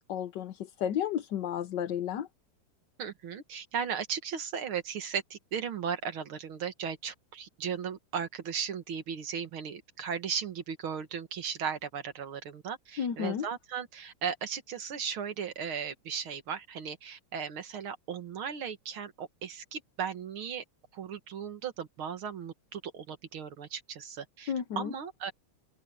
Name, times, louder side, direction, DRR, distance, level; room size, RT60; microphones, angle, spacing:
voice 1, 0.0-2.3 13.0-13.5 24.5-24.9, left 9 dB, 60° left, 1.4 m, -32 dB
voice 2, 3.0-20.6 20.9-25.3, right 7 dB, 70° right, 2.4 m, -36 dB
open air
omnidirectional pair, 2.4 m